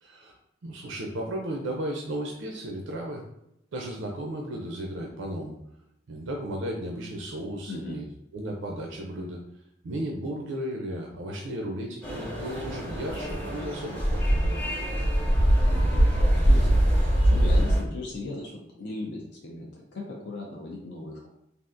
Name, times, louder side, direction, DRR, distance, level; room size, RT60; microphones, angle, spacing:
voice 1, 0.0-0.3 0.6-3.3 3.7-5.6 6.1-8.0 8.3-9.4 9.8-14.2, right 1 dB, 85° right, 0 dB, 0.5 m, -34 dB
voice 2, 7.7-8.0 15.7-21.3, left 2 dB, 65° left, -2 dB, 0.5 m, -38 dB
sound 1, 12.0-17.8, right 1 dB, 10° left, 0.8 m, -23 dB
3.4 x 2.4 x 2.5 m, 0.82 s
head